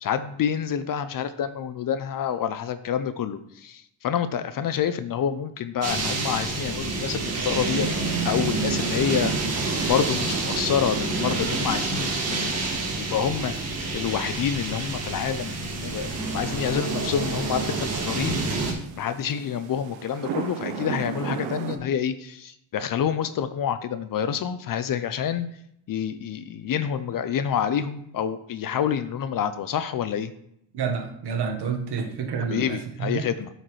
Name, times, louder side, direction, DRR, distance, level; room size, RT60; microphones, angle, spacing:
voice 1, 0.0-7.9 8.2-9.6 9.9-25.5 25.9-30.3 32.5-33.5, left 8 dB, 45° left, 12 dB, 0.6 m, -28 dB
sound 1, 5.8-18.7, right 3 dB, 30° right, 1.9 m, -28 dB
sound 2, 8.1-21.8, right 6 dB, 70° right, 1.0 m, -40 dB
voice 2, 30.7-33.2, right 6 dB, 55° right, 3 dB, 1.5 m, -29 dB
8.7 x 6.5 x 3.2 m, 0.73 s
cardioid pair, 115°, 47 cm